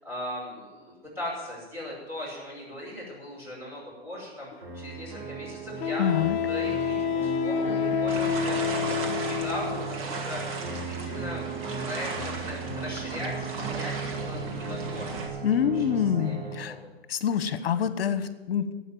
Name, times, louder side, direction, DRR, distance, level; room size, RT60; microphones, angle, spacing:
voice 1, 0.0-6.1 6.5-9.0 9.2-10.4 10.7-15.8 16.2-16.9, left 1 dB, 10° right, -6 dB, 5.5 m, -39 dB
Wind instrument woodwind instrument, 4.5-4.6 5.8-9.9, left 8 dB, 20° left, 0.8 m, -28 dB
sound 1, 4.6-16.6, right 4 dB, 55° right, 4.2 m, -36 dB
voice 2, 6.0-6.4 15.4-16.7 17.1-18.7, left 8 dB, 65° left, 11 dB, 1.3 m, -26 dB
sound 2, 8.1-15.3, right 3 dB, 35° right, 2.0 m, -36 dB
12.0 x 8.5 x 9.2 m, 1.2 s
hypercardioid pair, 150°, 31 cm